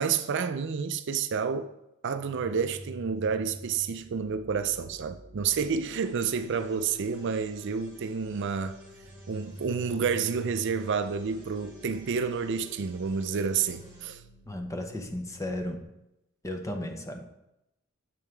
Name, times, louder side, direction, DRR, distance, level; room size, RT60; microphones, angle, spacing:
voice 1, 0.0-1.7 2.0-8.8 9.3-14.2, right 6 dB, 60° right, 0.5 m, -29 dB
sound 1, 2.1-15.8, right 1 dB, 45° left, 2.5 m, -49 dB
sound 2, 6.0-14.0, equal, 20° right, 2.6 m, -53 dB
voice 2, 14.4-15.8 16.4-17.2, left 1 dB, 15° left, 0.8 m, -34 dB
7.7 x 5.5 x 4.6 m
head